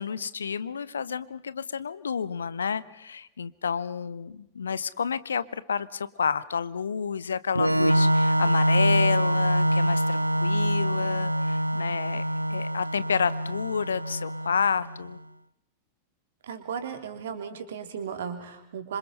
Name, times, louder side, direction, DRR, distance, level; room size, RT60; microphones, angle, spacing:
voice 1, 0.0-15.2, left 6 dB, 70° left, 18 dB, 0.9 m, -30 dB
Organ, 7.5-15.1, equal, 85° right, 0.8 m, -25 dB
voice 2, 16.4-19.0, right 7 dB, 60° right, 7 dB, 3.7 m, -35 dB
27.0 x 26.0 x 5.6 m, 0.78 s
figure-of-eight pair, 90°, 0 cm